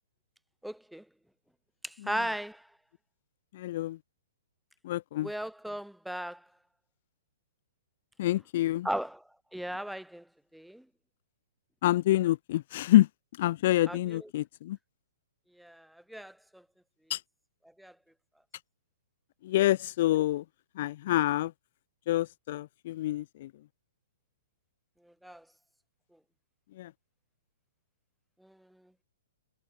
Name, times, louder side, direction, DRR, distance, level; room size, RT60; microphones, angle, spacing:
voice 1, 0.6-1.0 1.8-2.7 5.2-6.4 8.8-9.2 9.5-10.3 10.5-10.8 13.9-14.3 15.6-16.6 17.8-17.9 25.0-25.4 28.4-28.8, equal, ahead, 1.3 m, -37 dB
voice 2, 3.5-4.0 4.8-5.3 8.2-8.9 11.8-13.1 13.4-14.8 17.1-17.2 19.4-20.4 20.8-21.5 22.1-23.5 26.8-26.9, left 15 dB, 50° left, 0.4 m, -27 dB
figure-of-eight pair, 115°, 0 cm